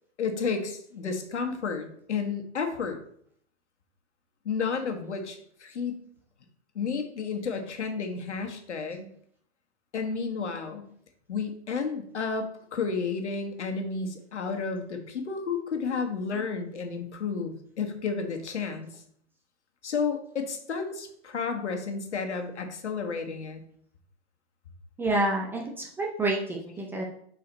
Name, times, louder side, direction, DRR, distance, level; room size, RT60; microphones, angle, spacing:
voice 1, 0.2-3.0 4.4-6.0 6.7-9.1 9.9-10.9 11.3-19.0 19.8-23.6, left 5 dB, 85° left, 5 dB, 1.5 m, -32 dB
voice 2, 25.0-27.0, right 2 dB, 5° right, 0 dB, 0.4 m, -28 dB
6.1 x 4.8 x 4.0 m, 0.64 s
hypercardioid pair, 135°, 34 cm